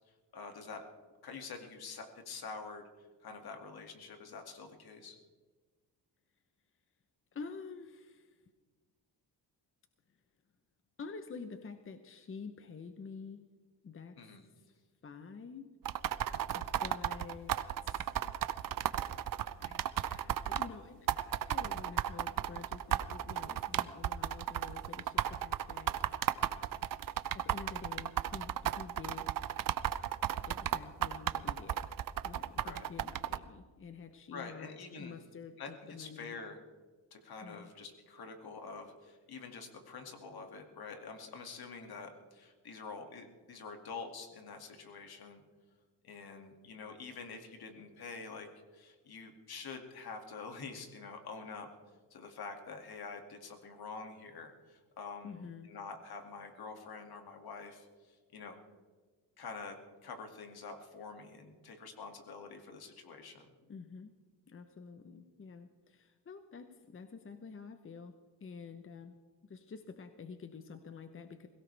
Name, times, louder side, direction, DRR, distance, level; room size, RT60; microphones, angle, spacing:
voice 1, 0.3-0.8 1.2-2.8 3.2-5.2 14.2-14.4 32.6-32.9 34.3-35.1 35.6-36.6 37.1-45.4 46.0-48.5 48.7-51.7 52.1-58.6 59.4-63.5, left 4 dB, 60° left, 4 dB, 2.4 m, -47 dB
voice 2, 7.3-8.4 11.0-13.4 13.8-14.3 15.0-15.8 16.5-18.3 19.6-26.0 27.3-29.3 30.4-31.8 32.2-36.3 37.4-37.7 55.2-55.7 63.6-64.1 64.5-68.1 68.4-69.1 69.4-71.5, left 5 dB, 30° left, 9 dB, 0.9 m, -48 dB
sound 1, 15.8-20.7 21.1-33.4, right 11 dB, 50° right, 0.7 m, -34 dB
22.0 x 17.0 x 3.4 m, 1.4 s
cardioid pair, 110°, 41 cm